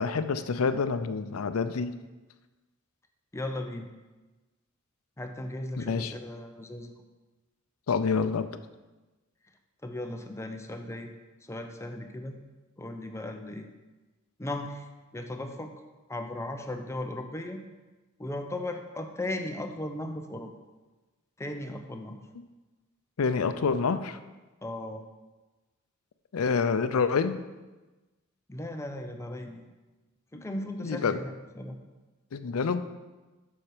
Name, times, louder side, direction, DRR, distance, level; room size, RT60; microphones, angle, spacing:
voice 1, 0.0-1.9 5.8-6.1 7.9-8.5 23.2-24.2 26.3-27.4 30.3-30.4 30.8-31.2 32.3-32.8, left 5 dB, 85° left, 11 dB, 0.5 m, -27 dB
voice 2, 3.3-3.9 5.2-7.0 9.8-11.1 11.5-12.4 12.8-13.7 14.4-14.8 15.1-15.7 16.1-17.6 18.2-20.5 21.4-22.2 24.6-25.0 28.5-29.7 30.3-31.8, left 1 dB, 15° left, 5 dB, 0.6 m, -36 dB
7.3 x 6.4 x 4.9 m, 1.2 s
head